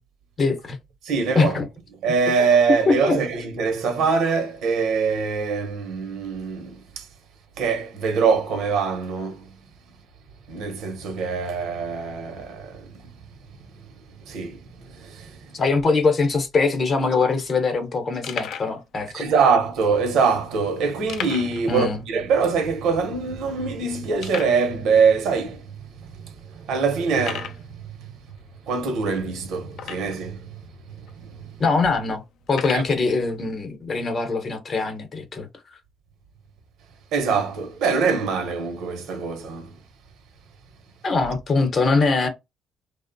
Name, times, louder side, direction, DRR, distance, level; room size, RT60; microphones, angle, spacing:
voice 1, 0.4-0.8 1.3-1.7 2.9-3.2 15.5-19.2 21.7-22.0 31.6-32.2 32.5-35.5 41.0-42.3, left 4 dB, 40° left, 0.7 m, -22 dB
voice 2, 1.0-1.6 2.0-7.1 7.6-9.6 10.5-13.1 14.2-15.5 19.1-28.1 28.7-30.6 30.9-31.5 32.7-32.8 37.1-39.8, right 5 dB, 80° right, 0.7 m, -24 dB
sound 1, 16.8-16.9 17.0-17.2 17.7-17.8 18.2-18.8 19.5-19.6 21.1-21.7 22.0-22.1 22.5-22.6 23.2-23.3 24.2-24.6 25.4-25.5 26.1-26.2 27.2-27.6 29.7-30.3 31.1-31.2 32.5-32.9, left 8 dB, 65° left, 0.3 m, -34 dB
2.9 x 2.0 x 2.5 m
cardioid pair, 120°, 0 cm